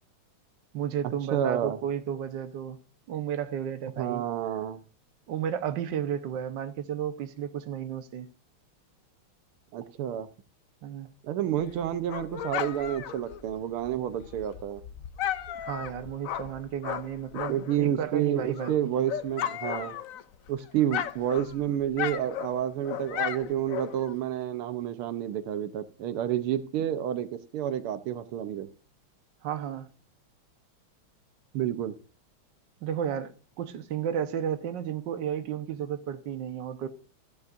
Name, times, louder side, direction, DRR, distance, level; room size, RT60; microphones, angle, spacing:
voice 1, 0.7-2.8 3.1-4.2 5.3-8.3 10.8-11.1 15.5-19.0 29.4-29.9 32.8-36.9, right 9 dB, 60° right, 1.7 m, -33 dB
voice 2, 1.3-1.8 4.0-4.8 9.7-10.3 11.2-14.8 17.5-20.0 20.5-28.7 31.5-32.0, right 10 dB, 90° right, 1.7 m, -29 dB
Dog, 11.6-17.8 18.2-20.5 20.8-24.2, left 10 dB, 85° left, 0.7 m, -35 dB
14.0 x 11.0 x 2.6 m
omnidirectional pair, 2.3 m